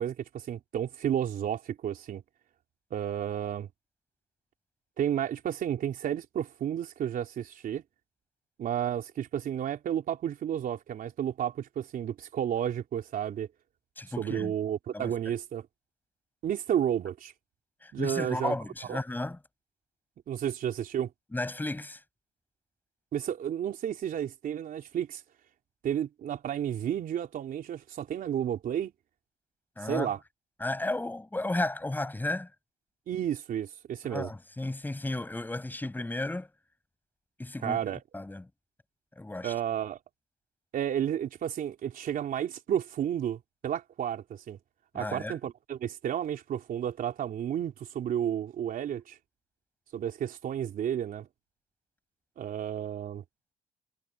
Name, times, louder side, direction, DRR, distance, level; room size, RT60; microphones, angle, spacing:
voice 1, 0.0-2.2 2.9-3.7 5.0-7.8 8.6-13.5 14.2-15.7 16.4-17.3 17.9-18.5 18.9-19.0 20.3-21.1 23.1-25.2 25.8-28.9 29.8-30.2 33.1-34.3 37.6-38.0 39.4-40.0 40.7-44.6 44.9-49.2 49.9-51.3 52.4-53.2, right 10 dB, 55° right, 3.8 m, -32 dB
voice 2, 14.0-14.5 14.9-15.1 17.8-19.4 21.3-22.0 29.8-30.1 30.6-32.5 34.1-36.5 37.4-37.8 38.1-38.4 39.2-39.5 44.9-45.3, left 2 dB, 10° left, 6.9 m, -33 dB
cardioid pair, 110°, 17 cm